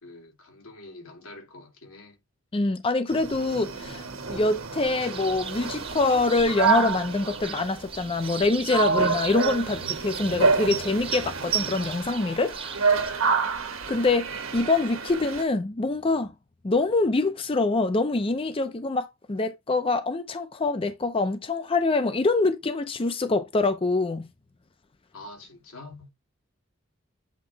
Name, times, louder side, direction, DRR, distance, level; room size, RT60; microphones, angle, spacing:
voice 1, 0.0-2.2 25.1-26.1, left 2 dB, 85° left, 2.3 m, -45 dB
voice 2, 2.5-12.6 13.9-16.3 16.6-24.3, left 3 dB, 25° left, 0.5 m, -25 dB
sound 1, 3.1-15.4, right 5 dB, 80° right, 1.5 m, -28 dB
sound 2, 5.0-13.1, right 7 dB, 25° right, 0.7 m, -41 dB
8.0 x 3.0 x 4.6 m
head